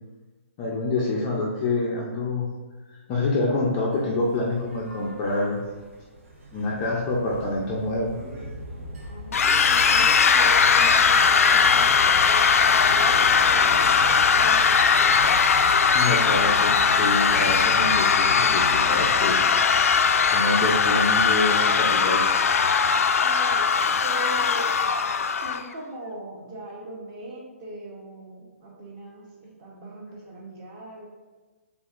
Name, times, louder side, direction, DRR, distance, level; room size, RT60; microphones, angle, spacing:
voice 1, 0.6-2.5 2.9-5.6 6.5-8.2 15.9-19.4 20.3-22.2, left 2 dB, 20° left, -3 dB, 0.4 m, -26 dB
sound 1, 3.9-23.1, equal, 60° right, 1.3 m, -39 dB
voice 2, 9.1-14.8 23.2-23.7 24.0-24.7 25.4-31.1, right 1 dB, 25° right, -2 dB, 0.8 m, -39 dB
sound 2, 9.3-25.6, left 6 dB, 85° left, 0.3 m, -20 dB
5.9 x 3.5 x 2.4 m, 1.3 s
hypercardioid pair, 170°, 8 cm